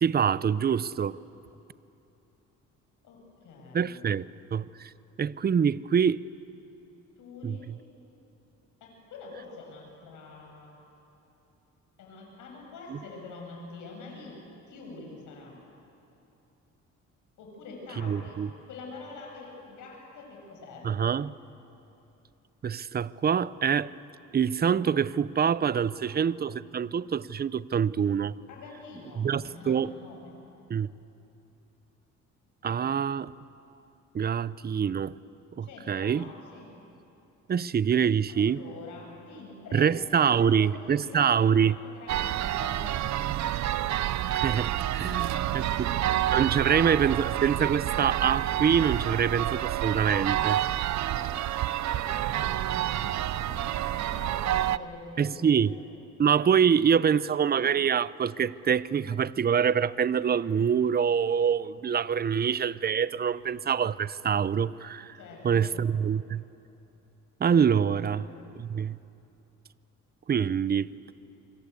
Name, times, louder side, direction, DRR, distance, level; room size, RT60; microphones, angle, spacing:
voice 1, 0.0-1.2 3.7-4.9 5.2-6.2 7.4-7.8 12.9-13.0 18.0-18.5 20.8-21.3 22.6-23.9 24.3-28.3 29.2-29.9 30.7-30.9 32.6-33.3 34.1-35.1 35.6-36.2 37.5-38.6 39.7-41.8 44.3-45.9 46.3-50.6 55.2-55.7 56.2-65.2 65.4-66.4 67.4-68.3 68.6-69.0 70.3-70.9, right 7 dB, 30° right, 0.6 m, -25 dB
voice 2, 3.0-4.0 7.2-7.7 8.8-10.8 12.0-14.4 14.7-15.6 17.4-20.9 25.8-26.4 26.7-26.9 28.5-30.4 35.6-36.7 38.3-43.4 44.9-45.9 46.5-47.2 50.1-51.4 51.7-55.8 65.1-65.7 67.8-68.4, left 3 dB, 85° left, 7.8 m, -46 dB
sound 1, 42.1-54.8, right 13 dB, 65° right, 0.7 m, -28 dB
27.0 x 25.0 x 8.4 m
cardioid pair, 90°, 30 cm